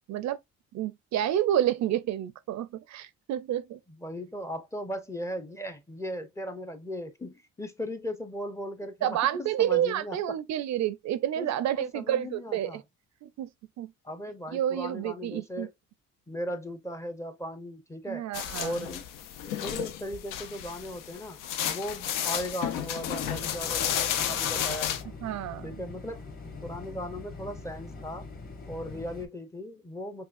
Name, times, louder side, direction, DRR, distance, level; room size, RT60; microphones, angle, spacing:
voice 1, 0.1-0.4 0.7-3.8 9.0-12.8 13.2-13.5 13.8-13.9 14.5-15.7 18.1-18.9 25.2-25.7, right 11 dB, 60° right, 0.5 m, -29 dB
voice 2, 4.0-10.4 11.4-11.5 11.8-12.8 14.0-15.7 16.3-18.3 18.6-19.1 19.4-21.4 21.7-25.0 25.6-26.3 26.6-28.3 28.7-30.2, equal, 10° left, 0.6 m, -37 dB
sound 1, 18.3-25.0, left 10 dB, 80° left, 0.7 m, -32 dB
sound 2, 23.2-29.3, left 3 dB, 30° left, 1.4 m, -43 dB
5.5 x 2.3 x 2.4 m
cardioid pair, 115°, 32 cm